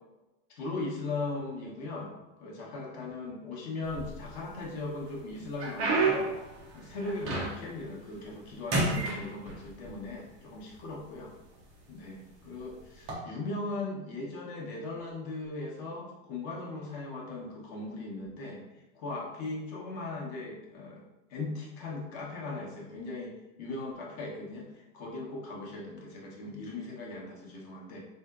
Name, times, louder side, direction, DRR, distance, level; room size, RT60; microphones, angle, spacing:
voice 1, 0.6-6.3 6.7-11.3 11.9-18.6 18.9-21.0 21.3-23.3 23.6-28.0, left 2 dB, 35° left, -2 dB, 0.7 m, -38 dB
sound 1, 3.8-4.6 5.1-7.8 8.2-8.5 8.7-9.9 10.8-10.9 11.6-11.8 12.9-13.1, right 3 dB, 20° right, 0.4 m, -30 dB
3.6 x 2.7 x 2.3 m, 0.99 s
supercardioid pair, 150°, 37 cm